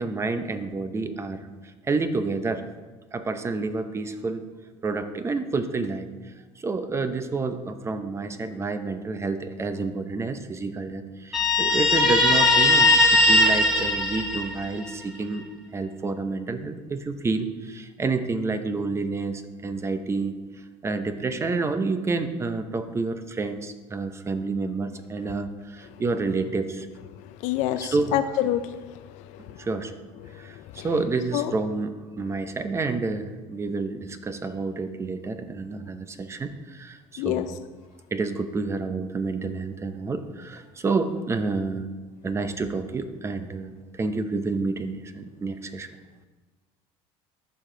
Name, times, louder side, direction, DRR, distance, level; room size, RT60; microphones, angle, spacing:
voice 1, 0.0-1.5 1.8-2.6 3.1-4.4 4.8-6.1 6.6-15.4 15.7-20.4 20.8-26.9 27.8-28.2 29.6-29.9 30.3-37.6 38.1-41.9 42.2-45.9, right 3 dB, 20° right, 9 dB, 0.6 m, -29 dB
Guitar, 11.3-14.9, left 2 dB, 5° right, 1.5 m, -19 dB
voice 2, 27.4-28.6 30.8-30.9 31.3-31.5 37.2-37.5, left 12 dB, 70° left, 9 dB, 0.4 m, -25 dB
12.0 x 4.8 x 3.8 m, 1.3 s
supercardioid pair, 115°, 13 cm